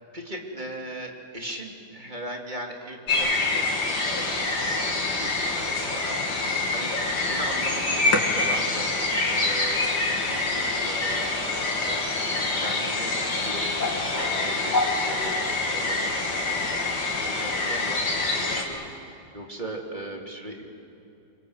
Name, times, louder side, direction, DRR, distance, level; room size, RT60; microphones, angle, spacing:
voice 1, 0.1-6.9 7.2-8.9 9.3-12.1 12.6-20.7, right 1 dB, 25° right, 1 dB, 3.0 m, -39 dB
sound 1, 3.1-18.6, left 2 dB, 85° left, 3.2 m, -26 dB
27.5 x 25.5 x 7.9 m, 2.7 s
omnidirectional pair, 1.8 m